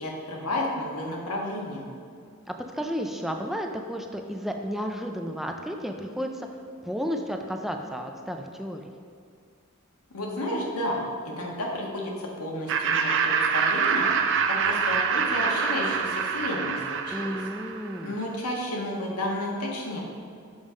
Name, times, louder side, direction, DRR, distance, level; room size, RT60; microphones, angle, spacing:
voice 1, 0.0-1.8 10.1-11.0 11.2-14.1 14.5-17.3 18.0-20.0, left 1 dB, 90° left, -2 dB, 1.6 m, -32 dB
voice 2, 2.5-6.5 6.8-8.8 17.1-18.1, equal, ahead, 3 dB, 0.4 m, -32 dB
Laughter, 12.7-18.0, right 6 dB, 60° right, 0.5 m, -25 dB
7.0 x 5.5 x 5.1 m, 2.3 s
head